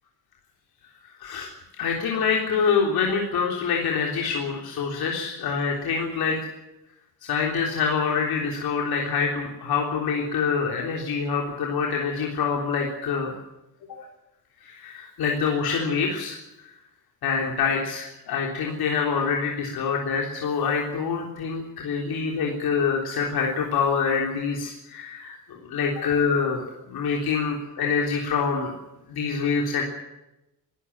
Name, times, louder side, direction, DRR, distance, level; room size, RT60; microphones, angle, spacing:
voice 1, 1.2-1.5 1.8-6.4 7.2-13.3 14.6-16.4 17.2-25.4 25.6-28.7 29.1-29.8, left 5 dB, 80° left, -1 dB, 3.7 m, -25 dB
23.0 x 13.5 x 10.0 m, 0.93 s
cardioid pair, 175°, 37 cm